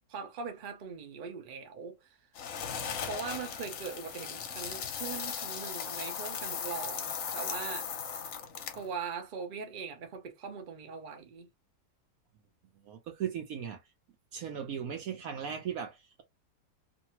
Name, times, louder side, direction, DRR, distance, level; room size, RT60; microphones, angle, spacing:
voice 1, 0.1-2.2 3.0-7.9 8.8-11.5, right 5 dB, 45° right, 0.6 m, -41 dB
sound 1, 2.4-8.9, left 7 dB, 65° left, 0.9 m, -37 dB
voice 2, 12.8-13.8 14.3-16.2, right 8 dB, 70° right, 0.9 m, -37 dB
2.7 x 2.6 x 2.8 m
omnidirectional pair, 1.8 m